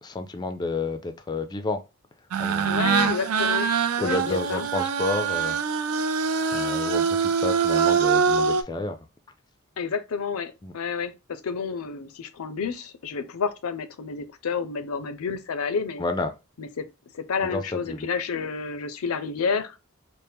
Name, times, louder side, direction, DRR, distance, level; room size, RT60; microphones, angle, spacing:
voice 1, 0.0-1.8 2.4-3.1 4.0-5.6 6.5-9.0 10.6-10.7 16.0-16.3 17.4-18.1, left 3 dB, 20° left, 0.3 m, -30 dB
sound 1, 2.3-8.6, right 6 dB, 80° right, 0.4 m, -24 dB
voice 2, 2.7-3.7 4.0-4.7 9.8-16.0 16.6-16.9 17.1-19.8, left 5 dB, 80° left, 0.5 m, -30 dB
4.3 x 2.0 x 3.4 m
head